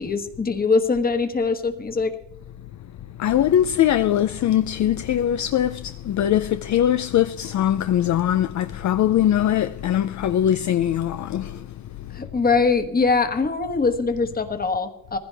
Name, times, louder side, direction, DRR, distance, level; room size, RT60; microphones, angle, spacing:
voice 1, 0.0-2.1 12.1-15.2, left 4 dB, 25° left, 1.4 m, -22 dB
voice 2, 3.2-11.7 12.0-12.2, left 11 dB, 55° left, 0.5 m, -21 dB
20.5 x 15.5 x 3.4 m
wide cardioid pair, 165°, 35 cm